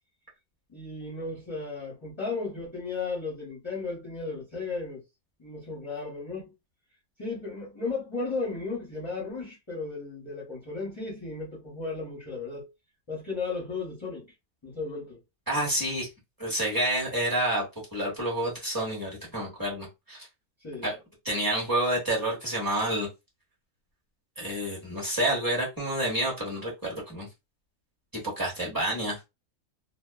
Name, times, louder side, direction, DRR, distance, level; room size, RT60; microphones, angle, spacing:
voice 1, 0.7-5.0 5.4-6.5 7.2-12.7 13.1-14.3 14.6-15.2 20.6-20.9, left 3 dB, 25° left, 0.6 m, -35 dB
voice 2, 15.5-16.1 16.4-17.6 17.9-20.3 20.8-21.0 21.2-23.1 24.4-27.3 28.4-29.2, right 1 dB, 15° right, 1.0 m, -29 dB
2.7 x 2.2 x 2.3 m
omnidirectional pair, 1.7 m